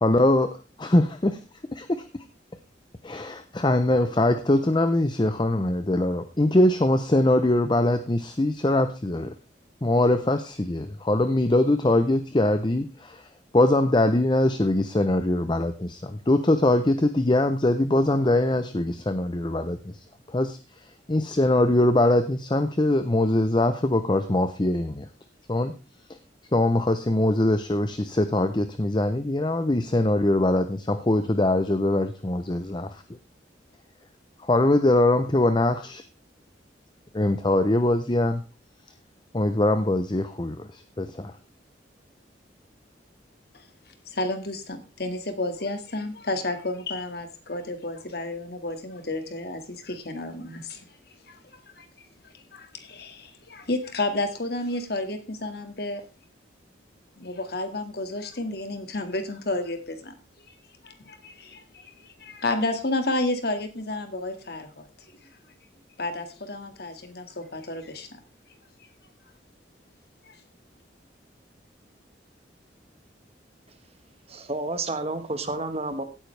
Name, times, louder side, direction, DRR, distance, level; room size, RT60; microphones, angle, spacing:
voice 1, 0.0-0.5 0.8-1.4 1.7-2.0 3.0-9.3 9.8-13.3 13.5-20.6 21.1-25.1 25.5-25.7 26.5-33.0 34.4-36.0 37.1-38.4 39.3-41.3, left 1 dB, 25° left, 10 dB, 0.7 m, -22 dB
voice 2, 44.1-50.9 51.3-51.4 51.8-51.9 52.5-56.0 57.2-60.1 60.8-64.9 66.0-68.1 70.2-70.4, left 2 dB, 60° left, 7 dB, 1.9 m, -31 dB
voice 3, 74.3-76.0, right 2 dB, 35° right, 9 dB, 1.4 m, -30 dB
16.0 x 9.2 x 3.3 m, 0.31 s
head